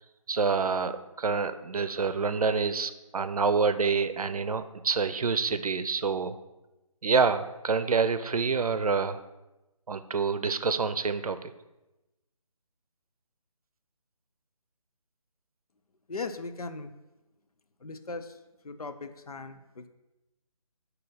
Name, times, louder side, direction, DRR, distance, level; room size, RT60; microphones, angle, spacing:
voice 1, 0.3-0.9 1.2-6.3 7.0-9.2 9.9-11.4, right 5 dB, 80° right, 11 dB, 0.5 m, -27 dB
voice 2, 16.1-16.9 17.8-18.4 18.6-19.9, left 3 dB, 85° left, 9 dB, 0.6 m, -38 dB
7.9 x 2.8 x 5.4 m, 1.0 s
figure-of-eight pair, 160°, 19 cm